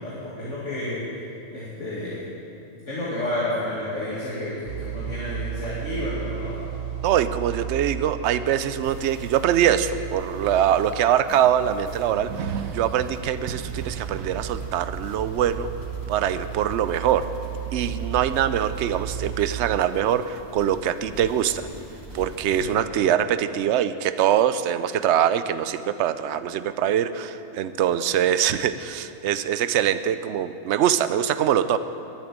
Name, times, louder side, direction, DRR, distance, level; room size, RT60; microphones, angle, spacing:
voice 1, 0.0-2.2 2.9-6.6 22.5-22.9, left 1 dB, 60° left, -9 dB, 2.6 m, -31 dB
sound 1, 4.7-19.8, right 10 dB, 85° right, 1.2 m, -34 dB
voice 2, 7.0-15.7 16.1-17.3 17.7-21.7 22.1-31.8, right 10 dB, 65° right, 12 dB, 0.8 m, -23 dB
sound 2, 8.5-22.8, equal, 30° right, 1.9 m, -44 dB
11.5 x 8.7 x 9.9 m, 2.8 s
omnidirectional pair, 1.4 m